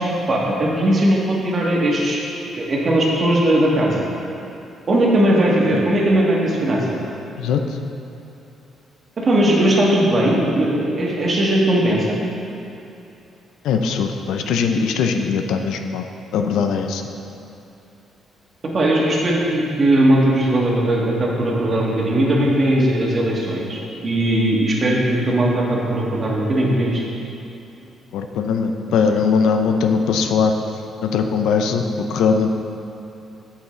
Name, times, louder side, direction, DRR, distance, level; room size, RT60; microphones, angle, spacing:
voice 1, 0.0-2.2 2.5-4.1 4.9-7.0 9.2-12.2 18.7-27.0, right 1 dB, 45° right, -3 dB, 1.6 m, -18 dB
voice 2, 13.6-16.1 16.3-17.0 28.1-30.5 31.0-31.8 32.1-32.5, left 5 dB, 85° left, 6 dB, 0.5 m, -20 dB
8.3 x 7.3 x 3.2 m, 2.8 s
cardioid pair, 90°, 0 cm